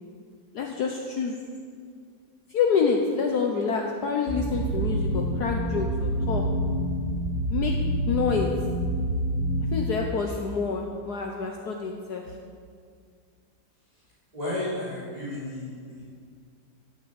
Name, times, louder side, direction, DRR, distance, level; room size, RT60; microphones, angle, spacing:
voice 1, 0.5-1.4 2.5-6.4 7.5-7.7 8.0-8.5 9.7-12.4, left 5 dB, 60° left, 1 dB, 1.5 m, -27 dB
sound 1, 4.3-9.7, equal, 65° right, 3.9 m, -27 dB
voice 2, 14.3-16.1, left 1 dB, 20° right, -10 dB, 3.8 m, -33 dB
12.5 x 10.5 x 7.9 m, 2.1 s
omnidirectional pair, 2.0 m